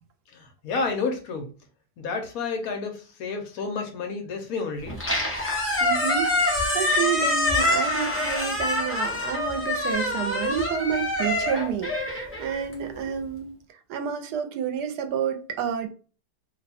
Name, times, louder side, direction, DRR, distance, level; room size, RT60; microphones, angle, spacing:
voice 1, 0.3-1.5 2.0-5.0, left 4 dB, 65° left, 4 dB, 1.1 m, -30 dB
Squeak, 4.9-13.1, left 1 dB, 15° left, 0.5 m, -25 dB
voice 2, 5.8-13.5 13.9-15.9, right 7 dB, 80° right, 7 dB, 1.2 m, -29 dB
2.9 x 2.2 x 4.1 m, 0.37 s
omnidirectional pair, 1.7 m